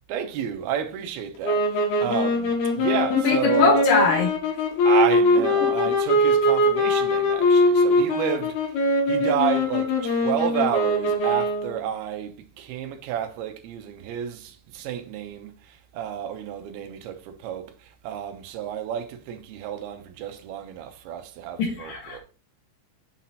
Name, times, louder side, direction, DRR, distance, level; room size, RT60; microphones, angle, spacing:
voice 1, 0.1-3.9 4.8-8.7 9.1-22.2, right 9 dB, 80° right, 2.9 m, -30 dB
sound 1, 1.4-11.8, left 1 dB, 80° left, 3.5 m, -22 dB
voice 2, 3.1-4.3 21.6-22.2, left 5 dB, 65° left, 2.9 m, -22 dB
7.2 x 5.9 x 4.1 m
omnidirectional pair, 4.5 m